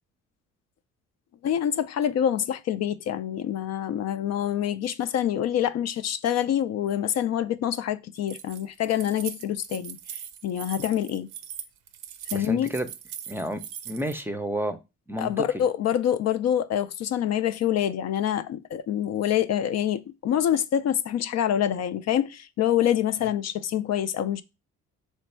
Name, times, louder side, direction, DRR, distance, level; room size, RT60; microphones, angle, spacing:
voice 1, 1.4-11.3 12.3-12.7 15.2-24.4, left 10 dB, 60° left, 0.4 m, -26 dB
Keys jangling, 8.1-14.2, right 9 dB, 85° right, 0.6 m, -40 dB
voice 2, 12.3-12.9 13.3-13.6 13.9-14.8 15.1-15.6, right 1 dB, 5° right, 0.5 m, -30 dB
3.3 x 3.2 x 4.3 m
cardioid pair, 90°, 30 cm